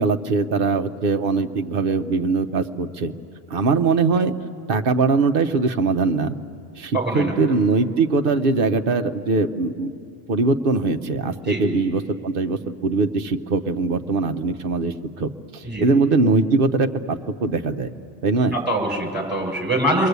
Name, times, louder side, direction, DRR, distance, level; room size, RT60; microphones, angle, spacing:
voice 1, 0.0-3.1 3.5-4.3 4.7-6.3 6.8-9.9 10.3-17.9 18.2-18.6, right 4 dB, 50° right, 6 dB, 1.0 m, -21 dB
voice 2, 6.9-7.3 11.5-11.6 15.6-15.9 18.5-20.1, right 1 dB, 10° right, -1 dB, 6.2 m, -23 dB
29.5 x 22.5 x 8.2 m, 2.4 s
omnidirectional pair, 1.3 m